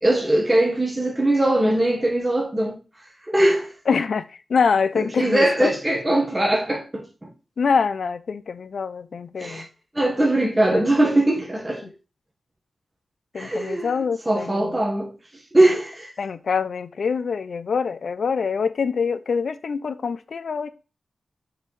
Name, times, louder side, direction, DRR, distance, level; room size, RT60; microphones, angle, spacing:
voice 1, 0.0-2.8 3.3-3.7 5.2-7.1 9.4-9.6 9.9-11.8 13.3-13.9 14.3-15.1 15.5-16.1, right 1 dB, 15° right, 1.3 m, -20 dB
voice 2, 3.9-5.7 7.6-9.7 10.4-10.8 11.8-11.9 13.3-14.8 16.2-20.7, left 5 dB, 70° left, 0.4 m, -25 dB
6.1 x 4.8 x 3.2 m
wide cardioid pair, 105°, 0 cm